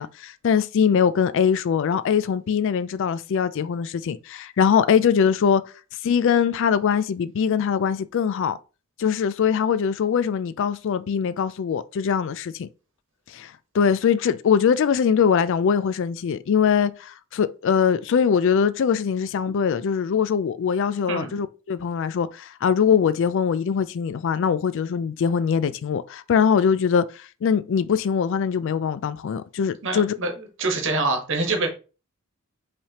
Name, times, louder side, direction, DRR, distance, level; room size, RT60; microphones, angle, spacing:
voice 1, 0.0-5.6 6.0-8.6 9.0-12.7 13.3-30.2, left 7 dB, 60° left, 0.3 m, -22 dB
voice 2, 21.1-21.4 29.8-31.7, right 3 dB, 60° right, 1.3 m, -25 dB
5.5 x 3.3 x 2.8 m
head